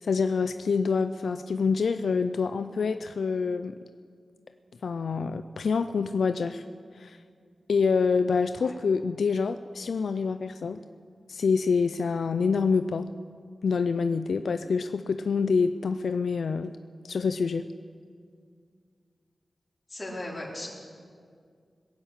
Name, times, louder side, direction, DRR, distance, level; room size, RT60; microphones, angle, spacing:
voice 1, 0.0-3.8 4.8-6.6 6.9-7.2 7.7-10.8 11.3-13.1 13.6-16.7 17.0-17.6, left 5 dB, 80° left, 10 dB, 0.4 m, -26 dB
voice 2, 19.9-20.7, left 1 dB, 25° left, -3 dB, 4.4 m, -37 dB
21.0 x 7.2 x 8.7 m, 2.1 s
cardioid pair, 60°, 0 cm